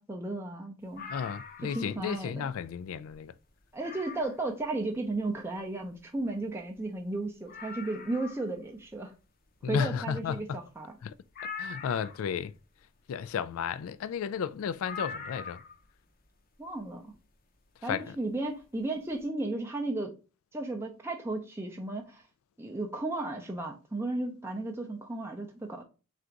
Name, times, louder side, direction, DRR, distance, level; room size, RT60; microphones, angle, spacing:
voice 1, 0.0-1.1 1.7-2.5 3.7-9.1 9.7-11.0 16.6-17.1 17.8-20.1 20.5-22.2 22.6-25.8, right 2 dB, 10° right, 0.5 m, -34 dB
sound 1, 0.9-2.0 2.4-2.5 3.0-3.2 3.8-4.4 6.2-6.3 6.4-6.5 7.0-7.1 7.5-8.5 11.3-12.3 14.8-15.9 17.1-17.2, left 5 dB, 45° left, 0.6 m, -42 dB
voice 2, 1.1-3.3 9.6-10.6 11.0-11.1 11.6-12.5 13.1-15.6 17.9-18.0, left 7 dB, 75° left, 0.3 m, -33 dB
3.8 x 2.5 x 4.5 m
head